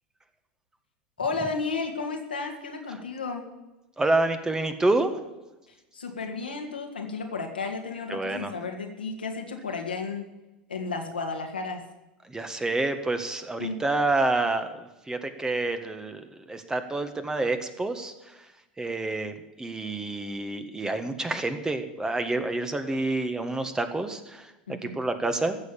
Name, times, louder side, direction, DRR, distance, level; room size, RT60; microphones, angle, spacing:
voice 1, 1.2-3.4 5.9-10.2 10.7-11.8 13.6-13.8 24.7-25.0, left 4 dB, 90° left, 2 dB, 2.2 m, -33 dB
voice 2, 4.0-5.1 8.1-8.5 12.3-18.4 18.8-25.6, right 2 dB, 10° right, 9 dB, 1.5 m, -28 dB
15.0 x 6.5 x 8.7 m, 1.0 s
hypercardioid pair, 85°, 5 cm